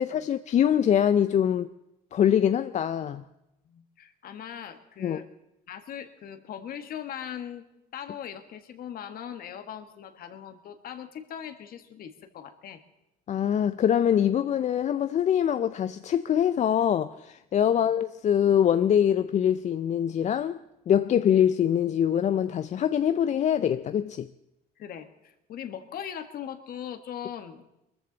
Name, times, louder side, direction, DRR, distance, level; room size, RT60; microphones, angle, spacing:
voice 1, 0.0-1.7 2.1-3.2 5.0-5.2 13.3-20.6 20.9-24.3, left 9 dB, 45° left, 0.5 m, -24 dB
voice 2, 3.7-5.2 5.7-7.6 7.9-12.8 17.7-17.8 24.8-27.6, left 9 dB, 60° left, 1.5 m, -40 dB
22.5 x 14.0 x 4.0 m
cardioid pair, 110°, 17 cm